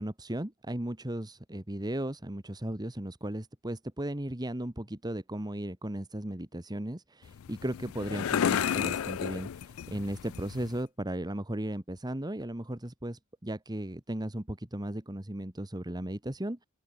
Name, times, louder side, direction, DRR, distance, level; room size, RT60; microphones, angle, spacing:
voice 1, 0.0-16.7, right 1 dB, 20° right, 1.5 m, -36 dB
sound 1, 7.2-10.8, left 8 dB, 80° left, 0.4 m, -32 dB
open air
head